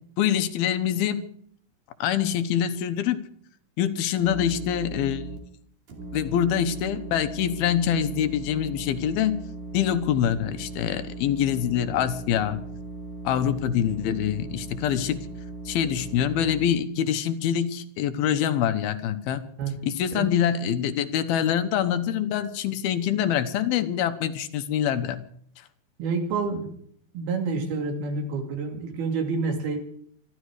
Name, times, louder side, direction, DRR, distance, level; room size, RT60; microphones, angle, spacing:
voice 1, 0.2-1.2 2.0-3.2 3.8-5.2 6.1-9.4 9.7-12.6 13.2-15.3 15.7-19.5 19.8-25.2, left 9 dB, 80° left, 10 dB, 2.9 m, -25 dB
sound 1, 4.2-5.4 5.9-16.7, right 2 dB, 55° right, 4.0 m, -38 dB
voice 2, 26.0-26.8 27.1-29.8, right 4 dB, 80° right, 4 dB, 4.4 m, -28 dB
25.5 x 11.5 x 4.9 m, 0.62 s
omnidirectional pair, 4.4 m